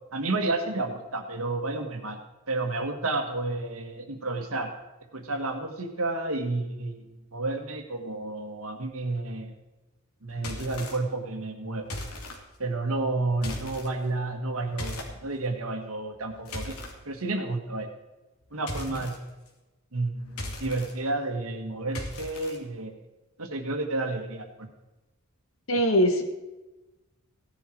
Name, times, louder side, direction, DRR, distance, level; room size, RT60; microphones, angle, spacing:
voice 1, 0.0-2.2 2.5-4.7 5.1-9.5 10.2-11.9 12.6-16.8 17.1-17.9 18.5-19.2 19.9-22.9 23.4-24.7, right 2 dB, 75° right, 5 dB, 1.8 m, -31 dB
sound 1, 10.3-11.0 11.8-12.4 13.3-13.9 14.8-15.1 16.1-16.9 18.7-19.2 20.3-20.9 21.9-22.6, left 1 dB, 90° left, 2.4 m, -37 dB
voice 2, 25.7-26.2, equal, 65° left, 5 dB, 1.7 m, -22 dB
16.5 x 10.5 x 4.5 m, 1.1 s
head